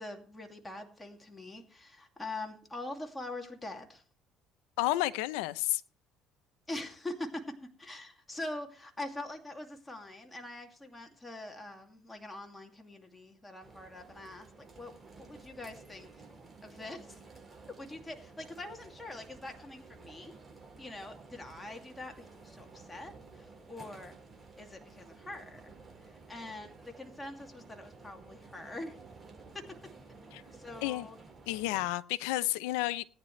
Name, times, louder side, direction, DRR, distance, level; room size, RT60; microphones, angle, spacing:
voice 1, 0.0-4.0 6.7-16.1 16.6-17.2 17.8-20.3 20.8-24.1 24.6-25.7 26.0-29.0 29.5-29.7 30.5-31.2, left 2 dB, 15° left, 2.4 m, -44 dB
voice 2, 4.8-5.8 30.3-30.4 30.8-31.1 31.5-33.0, left 17 dB, 90° left, 0.7 m, -31 dB
sound 1, 13.6-31.9, right 3 dB, 20° right, 6.5 m, -53 dB
18.5 x 9.8 x 3.3 m
supercardioid pair, 90°, 0 cm